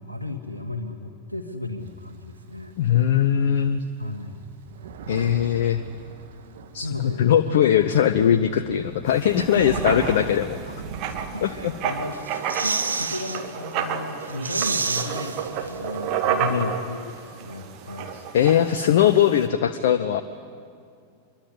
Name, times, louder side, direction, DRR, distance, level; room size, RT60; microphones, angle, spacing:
voice 1, 0.1-2.7 4.0-4.4 4.8-5.0 6.3-6.4 6.8-7.8 9.4-10.2 10.6-10.9 11.3-18.2, left 2 dB, 85° left, 1 dB, 1.5 m, -34 dB
Thunder, 1.8-3.1 3.6-3.7 4.0-11.8, right 6 dB, 60° right, 2.1 m, -39 dB
voice 2, 2.8-3.8 5.1-5.8 6.7-10.6 11.4-11.7 16.4-16.7 18.1-20.2, left 10 dB, 55° left, 11 dB, 0.8 m, -20 dB
Writing, 9.1-19.5, right 8 dB, 40° right, 2.4 m, -31 dB
sound 1, 12.1-13.4 13.8-13.9 14.2-16.2, right 4 dB, 75° right, 1.5 m, -28 dB
25.5 x 23.0 x 9.9 m, 2.3 s
figure-of-eight pair, 90°, 0 cm